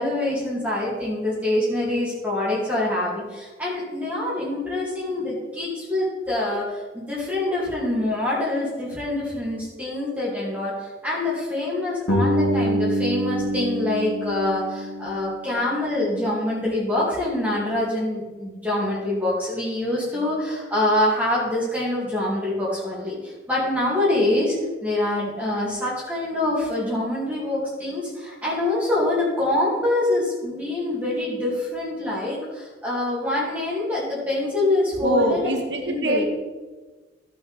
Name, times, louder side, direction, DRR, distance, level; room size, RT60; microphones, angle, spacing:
voice 1, 0.0-24.6 24.8-35.4 35.8-36.2, left 1 dB, 10° right, -8 dB, 2.3 m, -25 dB
Bass guitar, 12.1-16.0, equal, 75° left, 2.1 m, -25 dB
voice 2, 35.0-36.2, right 2 dB, 65° right, 3 dB, 1.7 m, -23 dB
16.0 x 5.8 x 4.2 m, 1.3 s
head